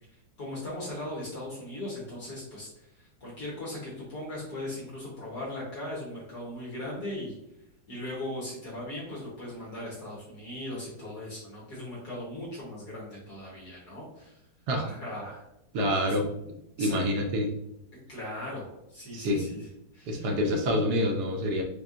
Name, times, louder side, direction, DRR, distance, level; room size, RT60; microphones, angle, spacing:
voice 1, 0.4-7.4 7.9-14.4 14.7-15.4 16.1-16.2 16.8-17.0 18.1-19.7 19.9-20.3, left 1 dB, 60° left, -6 dB, 1.7 m, -38 dB
voice 2, 15.7-16.3 16.8-17.5 19.1-19.5 20.1-21.6, equal, 70° right, 3 dB, 1.1 m, -27 dB
6.7 x 2.4 x 2.4 m, 0.85 s
omnidirectional pair, 2.0 m